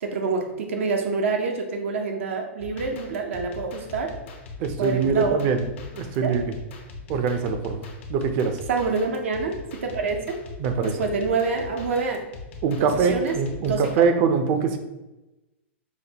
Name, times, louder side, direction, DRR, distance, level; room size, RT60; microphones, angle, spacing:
voice 1, 0.0-4.2 4.8-5.4 6.2-6.3 8.7-10.4 10.8-12.2 12.8-13.3 13.6-13.9, right 4 dB, 85° right, 2 dB, 0.6 m, -27 dB
sound 1, 2.6-14.0, left 4 dB, 70° left, 0.7 m, -41 dB
voice 2, 4.6-5.6 5.9-6.4 7.1-8.6 10.6-10.9 12.6-14.8, right 5 dB, 45° right, 7 dB, 0.5 m, -23 dB
5.0 x 2.1 x 2.9 m, 1.0 s
hypercardioid pair, 135°, 7 cm